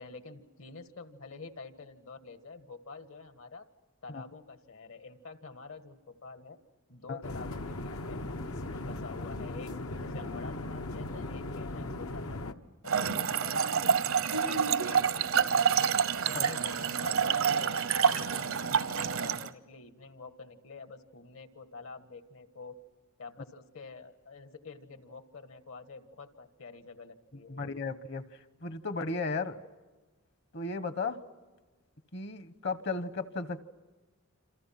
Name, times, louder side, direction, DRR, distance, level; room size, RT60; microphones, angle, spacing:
voice 1, 0.0-3.7 4.0-6.6 6.9-8.3 8.8-12.6 12.8-16.0 16.3-22.8 23.2-27.7, left 4 dB, 70° left, 9 dB, 1.7 m, -48 dB
sound 1, 7.2-12.5, left 2 dB, 90° left, 1.2 m, -38 dB
Trickle dribble / Fill (with liquid), 12.8-19.5, right 7 dB, 75° right, 0.8 m, -28 dB
voice 2, 27.5-28.2 28.6-29.6 30.5-31.2 32.1-33.6, left 3 dB, 55° left, 12 dB, 1.1 m, -34 dB
27.5 x 27.5 x 5.9 m, 1.3 s
head